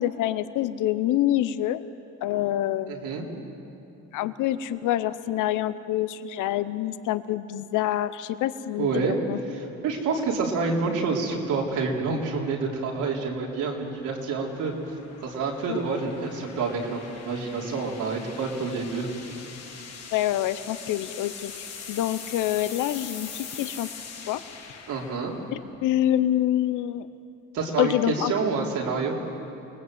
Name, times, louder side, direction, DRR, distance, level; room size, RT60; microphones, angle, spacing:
voice 1, 0.0-1.8 2.2-3.0 4.1-9.4 15.7-15.8 20.1-23.9 24.3-24.4 25.8-27.1 27.8-28.3, left 13 dB, 90° left, 14 dB, 0.8 m, -26 dB
voice 2, 2.9-3.3 8.8-9.2 9.5-14.7 15.2-17.0 17.3-19.4 24.9-25.3 27.5-29.2, right 4 dB, 85° right, -1 dB, 3.8 m, -28 dB
sound 1, 9.8-26.1, left 6 dB, 55° left, 3.1 m, -43 dB
28.5 x 19.5 x 7.8 m, 2.8 s
cardioid pair, 90°, 30 cm